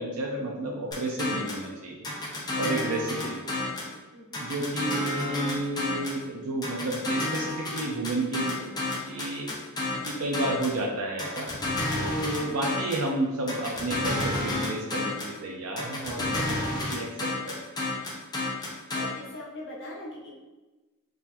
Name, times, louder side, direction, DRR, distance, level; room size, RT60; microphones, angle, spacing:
voice 1, 0.0-2.1 2.6-3.6 4.4-8.7 9.1-9.5 10.0-11.5 12.0-17.6, right 2 dB, 85° right, -1 dB, 0.5 m, -31 dB
sound 1, 0.9-1.7 2.0-3.9 4.3-6.2 6.6-10.8 11.2-13.1 13.5-15.4 15.8-19.1, left 2 dB, 20° left, 0.6 m, -31 dB
voice 2, 18.9-20.4, left 1 dB, 55° left, -5 dB, 1.0 m, -41 dB
3.8 x 2.5 x 2.8 m, 1.1 s
head